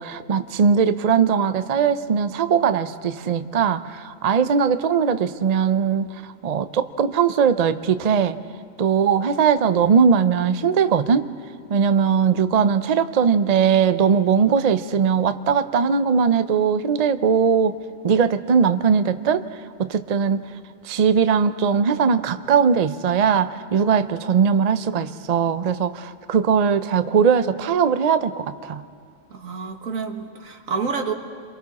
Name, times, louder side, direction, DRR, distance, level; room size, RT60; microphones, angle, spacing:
voice 1, 0.0-8.4 8.8-11.3 11.7-17.8 18.0-19.5 19.8-20.4 20.8-28.8, right 6 dB, 50° right, 11 dB, 0.5 m, -20 dB
voice 2, 29.3-31.1, right 5 dB, 75° right, 4 dB, 1.8 m, -28 dB
29.5 x 23.0 x 4.2 m, 2.4 s
omnidirectional pair, 1.4 m